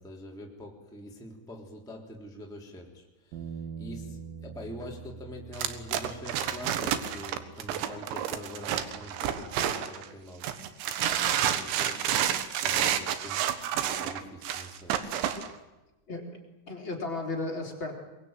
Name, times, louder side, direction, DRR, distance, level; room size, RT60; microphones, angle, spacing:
voice 1, 0.0-11.0 11.3-15.0, left 1 dB, ahead, -1 dB, 2.4 m, -45 dB
sound 1, 3.3-9.6, right 7 dB, 55° right, 3.3 m, -45 dB
sound 2, 5.5-10.1 10.4-15.5, right 10 dB, 75° right, 3.7 m, -29 dB
voice 2, 16.1-16.4 16.7-17.9, left 2 dB, 25° left, 0 dB, 3.9 m, -34 dB
23.5 x 22.5 x 9.1 m, 1.0 s
omnidirectional pair, 5.5 m